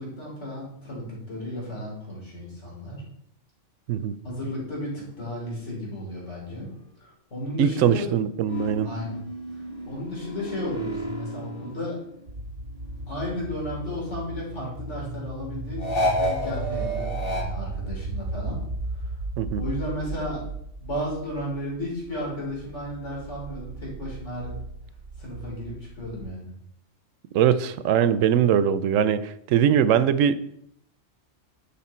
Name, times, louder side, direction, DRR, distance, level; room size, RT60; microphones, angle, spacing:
voice 1, 0.0-3.0 4.2-6.7 7.0-8.1 8.8-9.2 9.9-12.0 13.1-18.6 18.9-19.1 19.6-20.4 20.8-24.5 25.2-26.5, left 1 dB, 70° left, -4 dB, 3.7 m, -34 dB
voice 2, 7.6-8.9 19.4-19.6 27.3-30.4, right 9 dB, 90° right, 14 dB, 1.0 m, -21 dB
sound 1, 8.5-12.4 12.7-14.3 15.8-17.4, equal, 45° left, 1.9 m, -31 dB
sound 2, 12.3-26.3, right 3 dB, 65° right, 1.6 m, -36 dB
10.5 x 5.6 x 4.3 m, 0.76 s
omnidirectional pair, 1.3 m